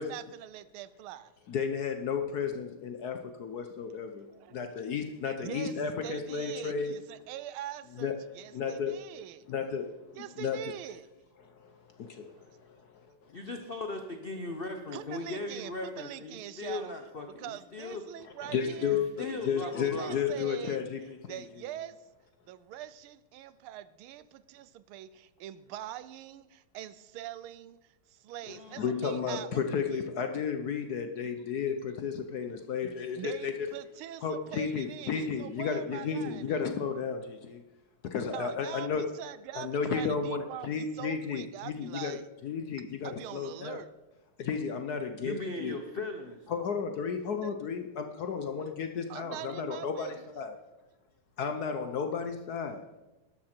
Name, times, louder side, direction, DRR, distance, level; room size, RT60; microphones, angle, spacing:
voice 1, 0.0-1.3 4.3-4.8 5.2-5.7 6.0-9.4 10.2-11.1 14.3-14.5 14.9-16.9 17.4-19.0 19.6-20.8 21.3-22.0 22.5-29.5 29.9-30.1 33.2-36.6 38.3-42.3 42.8-43.9 47.4-47.6 49.1-50.3, right 12 dB, 80° right, 15 dB, 1.4 m, -43 dB
voice 2, 1.5-4.3 4.5-7.0 8.0-8.2 8.5-9.0 9.5-10.0 10.4-10.7 11.4-13.3 18.2-21.4 28.8-33.7 34.2-37.6 38.0-39.1 39.5-42.2 42.4-43.8 44.4-45.8 46.5-50.5 51.4-52.8, left 6 dB, 65° left, 7 dB, 1.0 m, -33 dB
voice 3, 13.3-18.0 18.9-20.3 28.5-28.9 45.2-46.4, left 2 dB, 85° left, 5 dB, 0.5 m, -38 dB
12.5 x 11.5 x 4.4 m, 1.0 s
omnidirectional pair, 2.4 m